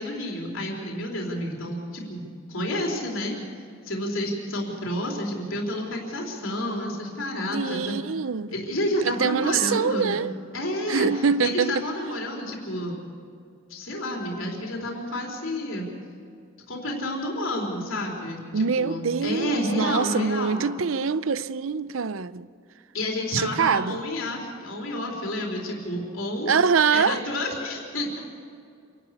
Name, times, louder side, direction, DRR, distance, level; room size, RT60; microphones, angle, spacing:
voice 1, 0.0-2.2 2.5-3.3 3.8-7.9 8.5-10.2 10.5-12.9 13.7-15.9 16.7-20.6 22.9-26.5 26.9-28.2, left 1 dB, 75° left, 3.9 m, -30 dB
voice 2, 7.5-8.5 9.0-10.3 10.9-11.9 18.5-22.5 23.3-24.0 26.5-27.2, right 6 dB, 75° right, 0.6 m, -24 dB
27.5 x 12.0 x 8.4 m
head